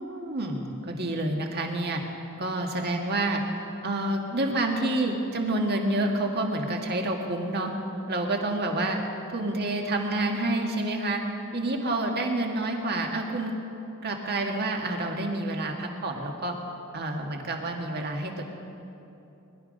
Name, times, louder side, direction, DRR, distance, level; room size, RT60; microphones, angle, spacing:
voice 1, 0.0-2.0 2.4-3.4 3.8-7.7 8.1-9.0 9.3-11.2 11.5-13.5 14.0-16.5 16.9-18.4, right 2 dB, 50° right, 2 dB, 1.7 m, -28 dB
21.5 x 12.0 x 5.3 m, 2.9 s
head